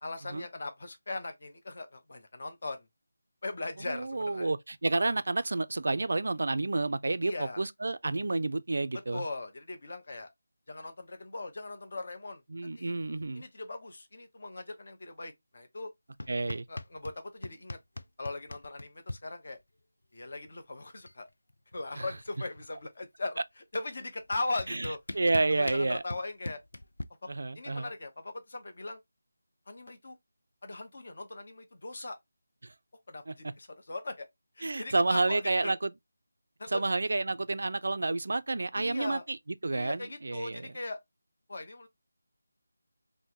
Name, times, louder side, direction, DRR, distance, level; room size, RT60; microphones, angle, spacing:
voice 1, 0.0-2.9 3.4-4.5 7.2-7.6 9.1-10.3 10.7-12.9 13.4-15.9 16.7-17.8 18.2-19.6 20.1-21.3 21.7-23.4 23.7-25.0 25.6-26.6 27.2-27.3 27.5-29.0 29.7-30.2 30.6-32.2 33.1-34.3 34.6-35.7 36.6-36.8 38.8-39.2 39.7-41.0 41.5-41.9, left 2 dB, 50° left, 0.8 m, -39 dB
voice 2, 3.9-9.2 12.5-13.4 16.3-16.7 22.0-22.1 24.7-26.0 27.3-27.9 32.6-32.7 33.3-33.5 34.6-35.9 36.7-39.4 39.6-40.7, right 2 dB, 65° right, 0.3 m, -30 dB
sound 1, 16.2-17.2 17.4-19.2 20.5-20.6 20.8-21.2 21.5-22.9 23.7-23.8 24.3-27.0, left 2 dB, 85° left, 0.4 m, -40 dB
3.5 x 2.1 x 2.9 m
figure-of-eight pair, 170°, 0 cm